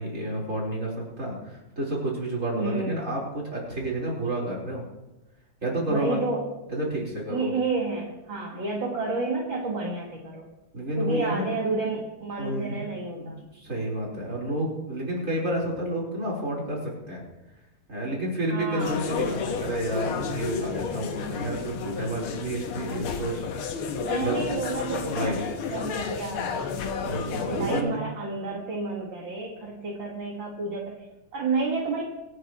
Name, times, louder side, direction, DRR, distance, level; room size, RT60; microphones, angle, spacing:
voice 1, 0.0-4.8 5.6-6.2 6.7-7.5 10.7-11.6 12.4-12.8 13.2-17.2 17.9-23.4 24.2-24.4 25.0-25.4 27.0-28.0, right 1 dB, 35° right, -4 dB, 4.7 m, -30 dB
voice 2, 2.6-3.0 5.9-6.5 7.3-10.5 11.0-13.3 18.5-19.0 24.0-27.1 27.5-31.0 31.3-32.1, right 3 dB, 60° right, -3 dB, 2.5 m, -30 dB
sound 1, 18.8-27.8, left 6 dB, 75° left, 1.9 m, -31 dB
26.5 x 9.5 x 3.1 m, 0.99 s
omnidirectional pair, 2.4 m